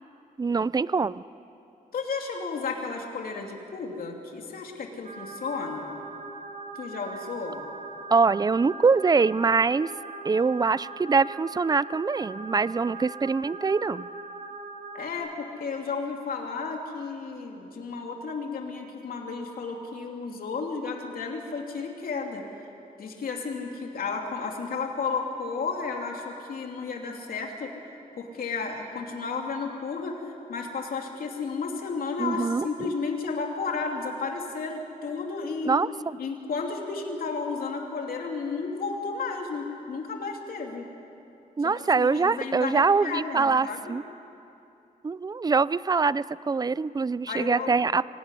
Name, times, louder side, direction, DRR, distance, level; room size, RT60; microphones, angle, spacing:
voice 1, 0.4-1.2 8.1-9.9 10.2-14.1 32.2-32.7 35.7-35.9 41.6-44.0 45.0-48.1, right 4 dB, 25° right, 18 dB, 0.5 m, -24 dB
voice 2, 1.9-5.9 6.7-7.6 14.9-22.4 23.0-27.7 28.2-35.8 36.2-40.8 41.6-43.9 47.3-47.8, left 4 dB, 90° left, 1 dB, 2.9 m, -33 dB
sound 1, 5.0-15.1, right 3 dB, 60° right, 3.7 m, -41 dB
25.5 x 18.5 x 9.9 m, 2.7 s
wide cardioid pair, 95°, 15 cm